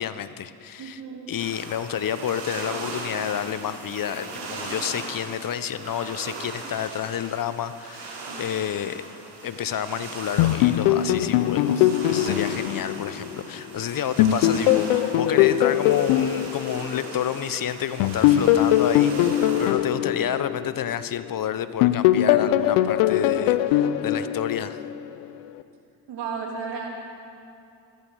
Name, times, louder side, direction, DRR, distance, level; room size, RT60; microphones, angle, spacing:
voice 1, 0.0-1.0 1.3-9.0 9.4-24.8, left 9 dB, 45° left, 13 dB, 0.7 m, -30 dB
voice 2, 0.8-1.2 14.9-15.3 19.1-19.3 26.1-26.9, right 5 dB, 65° right, 0 dB, 2.6 m, -34 dB
sound 1, 1.4-19.7, right 3 dB, 85° right, 2.3 m, -38 dB
sound 2, 10.4-13.7 14.2-17.4 18.0-21.3 21.8-25.1, left 12 dB, 90° left, 0.6 m, -21 dB
14.0 x 13.0 x 4.7 m, 2.7 s
hypercardioid pair, 50°, 46 cm